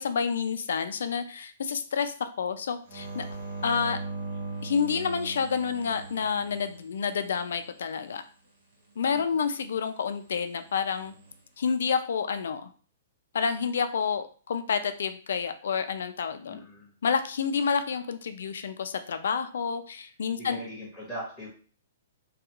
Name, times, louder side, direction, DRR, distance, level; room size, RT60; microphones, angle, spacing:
voice 1, 0.0-3.3 3.6-4.0 4.6-8.2 9.0-11.1 11.6-12.7 13.3-16.6 17.0-20.6, left 6 dB, 75° left, 9 dB, 0.3 m, -29 dB
sound 1, 2.9-7.5 10.8-11.3, right 3 dB, 50° right, 1.1 m, -39 dB
voice 2, 16.5-16.9 20.4-21.5, equal, 5° right, -8 dB, 1.0 m, -40 dB
2.4 x 2.3 x 2.9 m, 0.41 s
hypercardioid pair, 160°, 0 cm